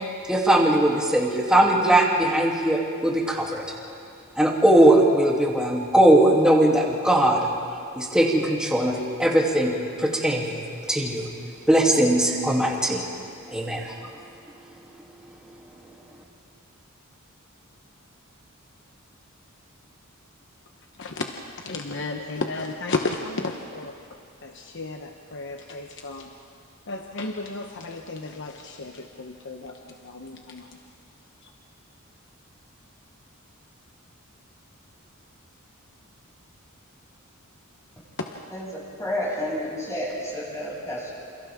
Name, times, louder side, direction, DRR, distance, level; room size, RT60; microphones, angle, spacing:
voice 1, 0.3-3.6 4.4-7.5 8.0-10.6 10.9-11.2 11.7-13.0 13.5-13.9, right 1 dB, 5° right, -3 dB, 3.0 m, -20 dB
voice 2, 21.0-23.9 24.4-26.3 26.9-30.8 31.4-31.5 38.2-38.5, left 3 dB, 60° left, 3 dB, 1.1 m, -33 dB
voice 3, 38.5-41.1, left 1 dB, 15° left, -6 dB, 7.6 m, -30 dB
28.5 x 28.0 x 3.7 m, 2.4 s
head